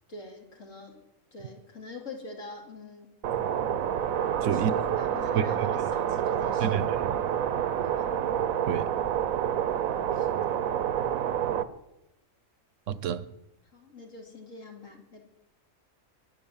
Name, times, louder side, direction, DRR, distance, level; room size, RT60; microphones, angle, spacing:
voice 1, 0.1-1.0 1.3-3.2 4.4-6.8 7.8-8.1 10.1-10.6 13.7-15.2, left 3 dB, 70° left, 3.1 m, -44 dB
sound 1, 3.2-11.6, right 9 dB, 90° right, 1.2 m, -28 dB
voice 2, 4.4-4.7 5.4-5.5 6.6-7.1 8.7-8.9 12.9-13.2, right 9 dB, 70° right, 1.0 m, -28 dB
23.5 x 8.0 x 7.2 m
omnidirectional pair, 1.4 m